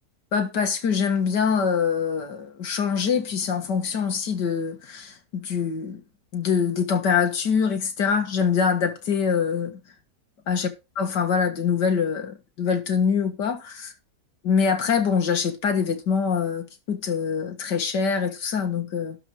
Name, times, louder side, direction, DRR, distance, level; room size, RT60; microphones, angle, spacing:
voice 1, 0.3-6.0 6.3-9.8 10.5-10.7 11.0-13.9 14.4-19.2, left 6 dB, 90° left, 2.2 m, -24 dB
12.0 x 4.8 x 6.3 m
omnidirectional pair, 1.8 m